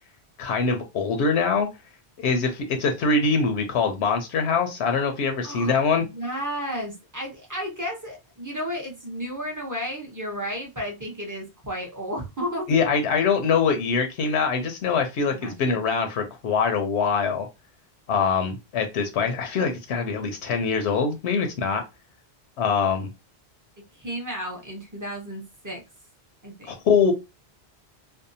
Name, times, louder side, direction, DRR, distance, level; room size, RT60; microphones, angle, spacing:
voice 1, 0.4-1.7 2.2-6.0 12.7-17.5 18.1-21.8 22.6-23.1 26.7-27.1, left 5 dB, 80° left, 0.8 m, -23 dB
voice 2, 5.4-12.7 15.3-15.8 24.0-25.8 26.4-26.8, equal, 20° right, 0.6 m, -33 dB
2.6 x 2.1 x 2.6 m
omnidirectional pair, 1.1 m